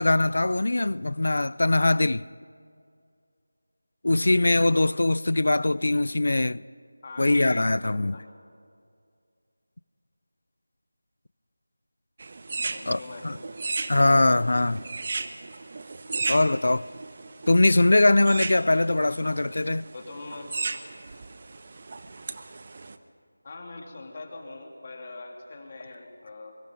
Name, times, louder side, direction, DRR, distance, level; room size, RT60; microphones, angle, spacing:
voice 1, 0.0-2.2 4.0-6.6 7.2-8.2 12.9-13.0 13.2-13.3 13.9-14.8 16.3-16.8 17.5-19.8, left 2 dB, 65° left, 0.5 m, -21 dB
voice 2, 7.0-8.3 12.6-13.4 19.2-19.3 19.9-20.5 23.4-26.6, left 2 dB, 35° left, 3.0 m, -43 dB
sound 1, 12.2-23.0, right 3 dB, 40° right, 1.0 m, -36 dB
Whoosh swoosh swish, 12.8-17.8, left 1 dB, 10° left, 7.1 m, -60 dB
25.5 x 23.5 x 5.3 m
figure-of-eight pair, 170°, 0 cm